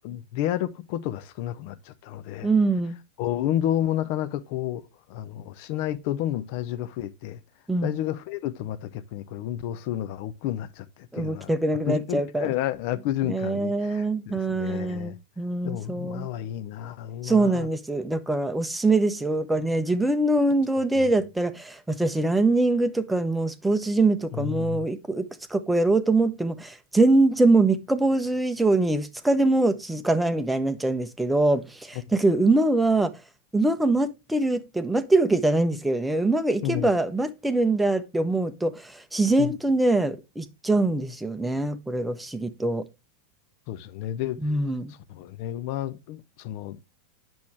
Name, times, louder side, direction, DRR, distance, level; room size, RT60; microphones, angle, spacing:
voice 1, 0.0-2.5 3.2-4.8 5.1-7.4 7.8-11.5 11.9-15.2 15.6-17.7 20.9-21.1 24.3-24.9 36.6-36.9 39.4-39.5 43.7-44.4 45.1-46.8, left 12 dB, 45° left, 0.6 m, -31 dB
voice 2, 2.4-3.0 7.7-8.0 11.1-12.5 13.3-16.3 17.2-33.1 33.5-42.9 44.4-44.9, right 2 dB, 5° right, 0.7 m, -23 dB
8.3 x 6.2 x 3.3 m
figure-of-eight pair, 90°, 0 cm